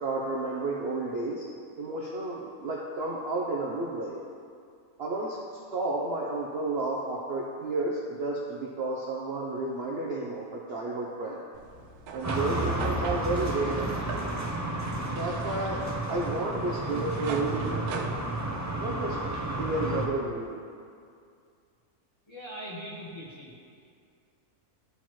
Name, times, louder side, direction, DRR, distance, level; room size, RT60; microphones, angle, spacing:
voice 1, 0.0-1.5 1.8-4.2 5.0-5.4 5.7-11.4 12.1-14.0 15.0-18.1 18.8-19.2 19.5-20.5, right 2 dB, 55° right, -3 dB, 0.8 m, -31 dB
sound 1, 11.5-19.3, right 4 dB, 85° right, 1.2 m, -41 dB
sound 2, 12.2-20.1, right 1 dB, 25° right, 0.4 m, -32 dB
voice 2, 22.3-23.5, equal, 20° left, -7 dB, 1.3 m, -40 dB
12.5 x 4.3 x 3.1 m, 2.3 s
omnidirectional pair, 1.6 m